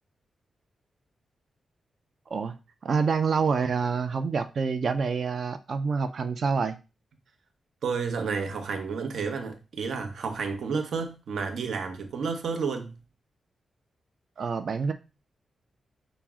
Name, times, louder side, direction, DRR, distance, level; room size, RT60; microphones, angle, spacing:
voice 1, 2.8-6.8 14.4-14.9, right 5 dB, 45° right, 0.3 m, -27 dB
voice 2, 7.8-13.0, right 5 dB, 70° right, 0.7 m, -31 dB
5.8 x 2.0 x 3.5 m
wide cardioid pair, 165°, 0 cm